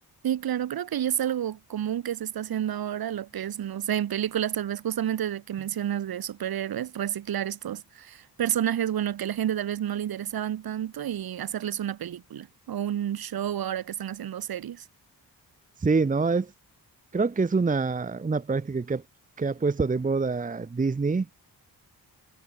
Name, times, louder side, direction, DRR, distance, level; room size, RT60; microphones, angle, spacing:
voice 1, 0.2-14.8, right 10 dB, 60° right, 1.1 m, -30 dB
voice 2, 15.8-16.5 17.1-19.0 19.4-21.3, right 4 dB, 20° right, 0.9 m, -25 dB
wide cardioid pair, 175°, 40 cm